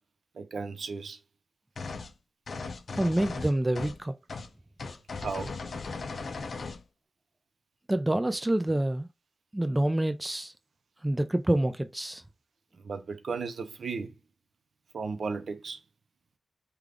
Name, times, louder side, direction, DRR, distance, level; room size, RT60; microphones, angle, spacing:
voice 1, 0.4-1.2 5.2-5.5 12.8-14.1 14.9-15.8, right 4 dB, 80° right, 0.5 m, -35 dB
sound 1, 1.8-2.1 2.5-4.0 4.3-4.5 4.8-6.8, left 4 dB, 70° left, 0.4 m, -37 dB
voice 2, 3.0-4.1 7.9-9.1 9.5-10.5 11.0-12.2, right 1 dB, 15° right, 0.4 m, -27 dB
3.3 x 2.3 x 3.6 m
wide cardioid pair, 85°, 0 cm